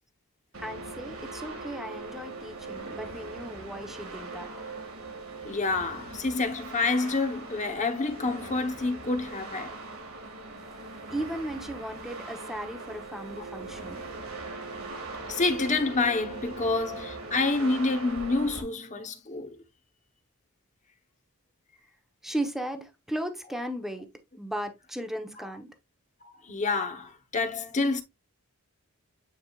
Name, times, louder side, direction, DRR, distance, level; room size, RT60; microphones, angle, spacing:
sound 1, 0.5-18.6, right 3 dB, 70° right, 2.3 m, -41 dB
voice 1, 0.6-4.5 11.1-14.0 22.2-24.1 24.4-25.7, right 1 dB, ahead, 1.0 m, -36 dB
voice 2, 5.4-9.7 15.3-19.5 26.2-28.0, left 3 dB, 35° left, 1.1 m, -28 dB
9.0 x 4.9 x 2.4 m
head